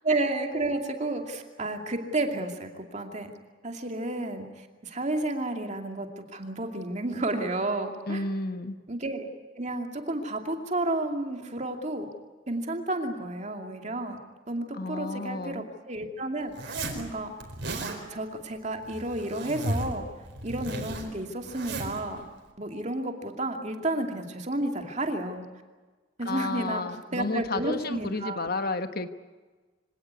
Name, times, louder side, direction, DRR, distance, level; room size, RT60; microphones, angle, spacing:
voice 1, 0.0-3.3 3.6-8.2 8.9-9.3 9.6-12.1 12.5-14.2 14.5-17.3 17.8-20.1 20.4-22.2 22.6-25.5 26.2-26.8 27.1-28.5, right 2 dB, 35° right, 4 dB, 2.5 m, -31 dB
voice 2, 8.1-8.8 14.7-15.6 26.2-29.1, left 2 dB, 50° left, 9 dB, 1.3 m, -31 dB
Zipper (clothing), 16.5-17.0 17.4-18.0 18.8-20.0 20.2-22.0, right 1 dB, 60° right, 4.5 m, -34 dB
25.0 x 18.0 x 9.6 m, 1.3 s
head